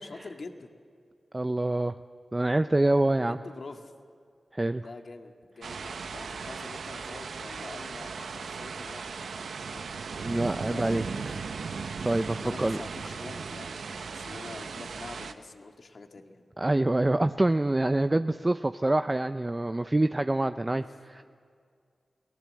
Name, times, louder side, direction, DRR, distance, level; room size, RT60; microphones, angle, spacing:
voice 1, 0.0-0.7 3.2-3.9 4.8-9.2 9.6-9.9 10.7-11.3 12.4-16.4 20.7-21.0, left 3 dB, 65° left, 4 dB, 2.0 m, -45 dB
voice 2, 1.3-1.9 2.3-3.4 4.5-4.8 10.2-11.0 12.0-12.8 16.6-21.2, right 2 dB, 25° right, 9 dB, 0.6 m, -26 dB
sound 1, 5.6-15.3, right 5 dB, 85° right, 0.8 m, -37 dB
28.5 x 18.0 x 7.7 m, 2.2 s
cardioid pair, 45°, 0 cm